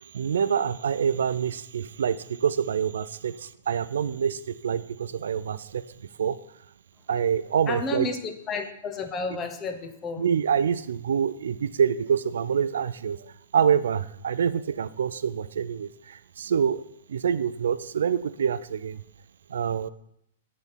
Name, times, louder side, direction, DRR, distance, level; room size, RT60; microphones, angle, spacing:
voice 1, 0.1-5.8 6.2-6.4 7.1-8.1 9.3-9.4 10.2-13.2 13.5-16.8 17.1-19.0 19.5-19.9, right 7 dB, 85° right, 0.3 m, -26 dB
voice 2, 7.7-10.2, left 4 dB, 25° left, 0.7 m, -32 dB
6.3 x 4.2 x 5.2 m
hypercardioid pair, 140°, 0 cm